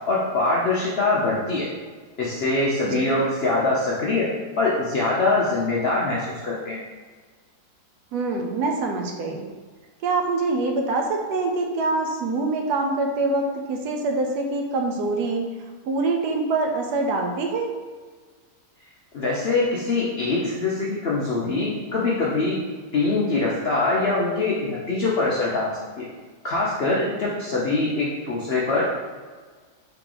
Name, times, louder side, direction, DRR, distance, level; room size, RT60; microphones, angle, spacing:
voice 1, 0.1-1.7 2.2-4.3 4.6-6.8 19.1-22.6 22.9-25.7 26.0-26.1 26.4-28.8, left 3 dB, 70° left, -5 dB, 0.6 m, -23 dB
voice 2, 8.1-9.4 10.0-15.5 15.8-17.7, right 3 dB, 75° right, 2 dB, 1.1 m, -25 dB
4.1 x 2.9 x 3.8 m, 1.5 s
omnidirectional pair, 1.8 m